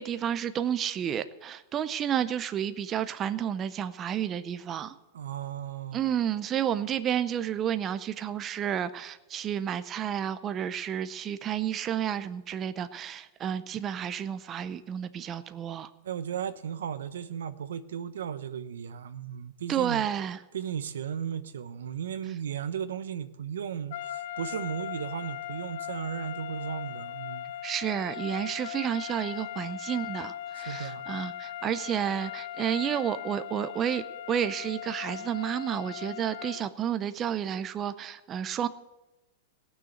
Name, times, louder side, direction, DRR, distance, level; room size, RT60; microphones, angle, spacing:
voice 1, 0.0-4.9 5.9-15.9 19.7-20.4 27.6-38.7, right 9 dB, 25° right, 12 dB, 0.6 m, -31 dB
voice 2, 5.1-6.0 16.0-20.1 20.5-27.5 30.7-31.0, right 8 dB, 90° right, 13 dB, 0.8 m, -35 dB
sound 1, 23.9-36.8, left 12 dB, 65° left, 0.4 m, -39 dB
17.5 x 6.4 x 7.9 m, 1.0 s
hypercardioid pair, 145°, 0 cm